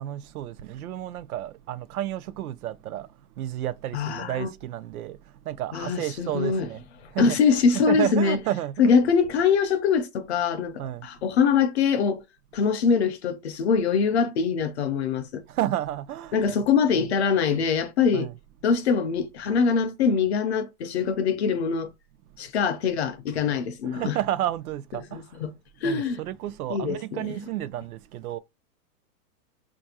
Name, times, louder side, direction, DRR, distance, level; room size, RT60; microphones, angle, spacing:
voice 1, 0.0-6.8 7.1-8.9 10.8-11.1 15.5-16.7 16.9-17.1 18.1-18.3 23.8-25.4 25.8-28.4, right 13 dB, 70° right, 0.5 m, -31 dB
voice 2, 3.9-4.5 5.7-6.7 7.2-8.4 8.8-12.2 12.5-15.4 16.3-18.3 18.6-21.9 22.4-24.2 25.1-25.5 25.8-26.2 26.7-27.2, left 6 dB, 45° left, 0.5 m, -23 dB
4.4 x 2.6 x 2.8 m
hypercardioid pair, 160°, 46 cm